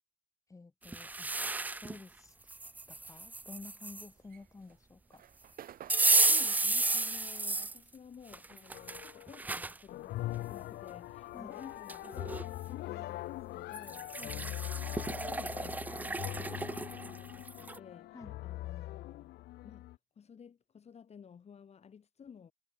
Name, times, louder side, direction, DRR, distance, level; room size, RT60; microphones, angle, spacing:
voice 1, 0.5-1.3 1.8-2.3 2.9-5.2 11.3-11.5 14.2-14.3 18.1-18.3, left 3 dB, 20° left, 4.0 m, -51 dB
sound 1, 0.8-2.0 2.5-4.1 5.9-7.8 8.3-9.8 10.3-10.4 11.5-11.6 11.9-12.5 13.7-17.8, right 3 dB, 10° right, 0.3 m, -32 dB
sound 2, 4.2-8.9 9.2-11.2, right 11 dB, 60° right, 3.2 m, -55 dB
voice 2, 6.3-19.4 19.6-22.5, left 7 dB, 40° left, 5.2 m, -54 dB
sound 3, 8.7-9.5 9.9-20.0, left 16 dB, 75° left, 1.4 m, -42 dB
cardioid pair, 110°, 17 cm